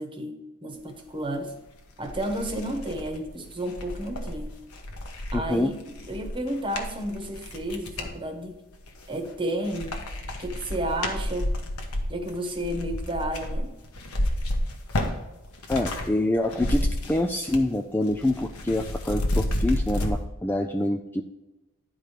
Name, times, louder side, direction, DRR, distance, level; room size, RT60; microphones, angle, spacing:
voice 1, 0.0-1.5 2.0-4.5 5.3-8.6 9.1-9.9 10.4-11.5 12.1-13.7, right 1 dB, 20° right, 4 dB, 1.2 m, -32 dB
sound 1, 1.5-1.6 2.0-8.1 8.7-9.3 9.6-16.1 16.3-17.7 18.0-20.1, left 1 dB, 75° left, 1.2 m, -31 dB
voice 2, 5.3-5.7 15.7-21.2, left 1 dB, 10° left, 4 dB, 0.4 m, -26 dB
10.5 x 4.7 x 5.1 m, 1.0 s
head